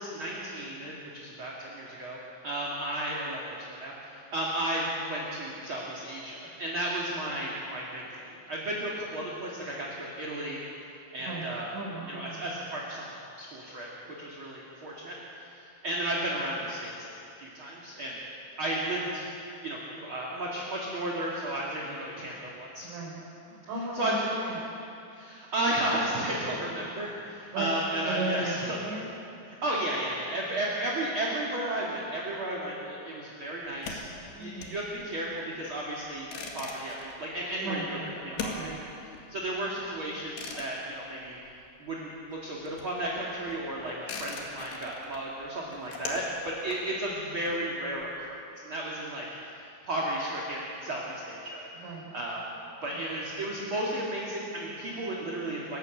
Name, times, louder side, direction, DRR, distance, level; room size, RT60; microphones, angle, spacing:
voice 1, 0.0-10.6 11.1-11.7 12.1-17.1 17.4-18.2 18.6-19.2 19.6-22.9 23.9-24.4 25.1-28.8 29.4-34.0 34.4-38.0 38.4-38.8 39.3-41.4 41.8-43.9 44.2-49.3 49.9-51.7 52.1-52.4 52.8-55.8, right 1 dB, 35° right, -4 dB, 2.4 m, -33 dB
voice 2, 11.2-12.5 22.8-23.2 23.5-24.6 27.5-27.7 28.1-29.2 34.3-34.8 37.5-38.8 51.7-52.0 53.1-53.2, right 2 dB, 80° right, -2 dB, 6.8 m, -36 dB
sound 1, 33.6-42.0 42.3-48.0, left 4 dB, 70° left, 4.0 m, -42 dB
29.5 x 12.5 x 8.0 m, 2.7 s
omnidirectional pair, 5.3 m